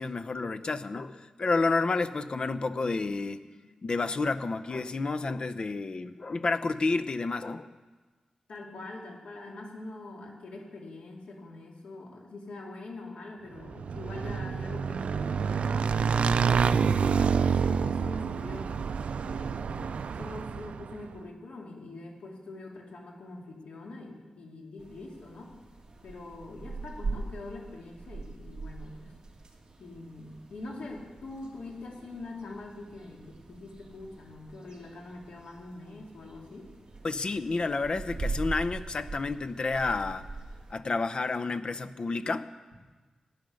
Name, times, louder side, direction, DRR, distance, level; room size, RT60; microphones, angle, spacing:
voice 1, 0.0-3.4 3.8-7.7 37.0-40.3 40.7-42.5, left 3 dB, 50° left, 11 dB, 0.6 m, -30 dB
voice 2, 8.5-18.9 19.2-25.5 26.0-29.1 29.8-36.7, left 2 dB, 90° left, -1 dB, 2.6 m, -44 dB
Motorcycle / Engine, 13.6-21.0, right 6 dB, 80° right, 0.4 m, -28 dB
sound 1, 24.8-40.7, right 3 dB, 40° right, 2.2 m, -42 dB
15.5 x 9.2 x 6.4 m, 1.3 s
wide cardioid pair, 100°, 2 cm